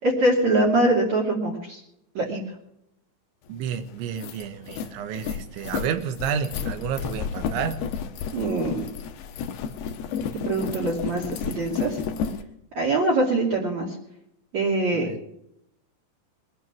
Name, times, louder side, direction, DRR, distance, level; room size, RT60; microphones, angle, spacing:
voice 1, 0.0-1.8 2.1-2.4 8.3-8.9 10.4-12.0 12.7-13.9 14.5-15.1, right 2 dB, 45° right, -1 dB, 3.3 m, -23 dB
voice 2, 3.5-7.8 14.9-15.2, right 8 dB, 80° right, 10 dB, 3.5 m, -30 dB
sound 1, 3.6-3.7 4.0-12.4, left 7 dB, 65° left, 2.8 m, -31 dB
22.0 x 10.5 x 6.0 m, 0.79 s
omnidirectional pair, 5.4 m